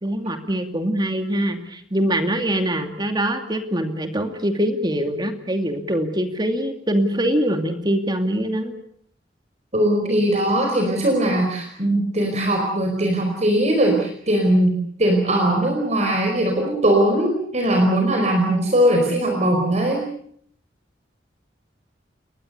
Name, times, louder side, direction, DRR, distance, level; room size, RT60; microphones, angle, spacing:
voice 1, 0.0-8.7 10.0-10.1, right 1 dB, 25° right, 6 dB, 2.6 m, -23 dB
voice 2, 9.7-20.0, right 1 dB, 40° right, 2 dB, 4.9 m, -20 dB
29.5 x 22.0 x 6.8 m, 0.63 s
head